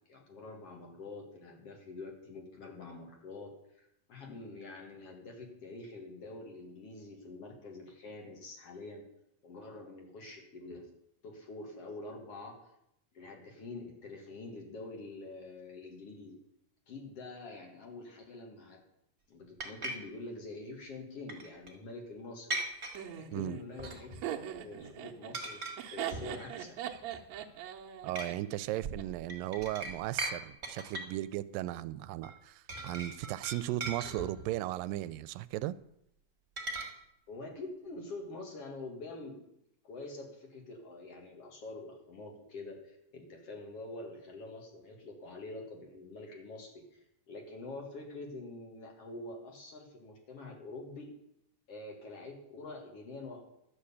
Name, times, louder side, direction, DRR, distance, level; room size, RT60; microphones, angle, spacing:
voice 1, 0.1-3.5 3.7-9.0 9.4-10.9 11.2-12.6 13.1-16.4 16.9-18.8 19.3-22.6 23.1-24.1 24.6-26.8 37.3-39.4 39.8-51.1 51.7-53.4, left 2 dB, 50° left, 1 dB, 2.6 m, -46 dB
sound 1, 19.6-19.9 21.3-21.7 22.5-23.0 23.8-24.3 24.6-24.8 25.3-25.8 26.1-26.4 26.9-27.4 28.1-28.3 28.8-30.3 30.6-31.1 32.2-32.4 32.7-34.6 36.6-36.9, right 2 dB, 30° right, 1.6 m, -39 dB
Laughter, 22.9-29.0, right 10 dB, 65° right, 2.0 m, -41 dB
voice 2, 28.0-35.7, right 15 dB, 90° right, 16 dB, 2.3 m, -36 dB
12.0 x 6.6 x 8.5 m, 0.79 s
omnidirectional pair, 3.9 m